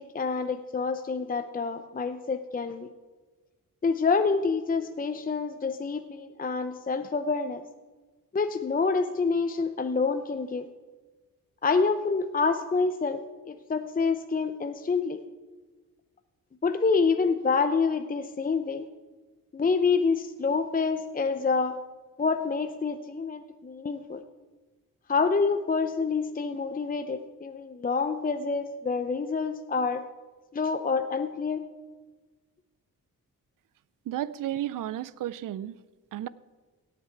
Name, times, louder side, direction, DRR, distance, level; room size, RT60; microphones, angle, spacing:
voice 1, 0.0-2.9 3.8-7.6 8.3-10.6 11.6-15.2 16.6-18.9 19.5-21.8 22.2-24.2 25.1-30.0 30.5-31.6, left 4 dB, 25° left, 8 dB, 0.6 m, -27 dB
voice 2, 34.1-35.8 36.1-36.3, right 12 dB, 70° right, 18 dB, 0.5 m, -32 dB
17.5 x 6.8 x 4.6 m, 1.3 s
cardioid pair, 75°, 33 cm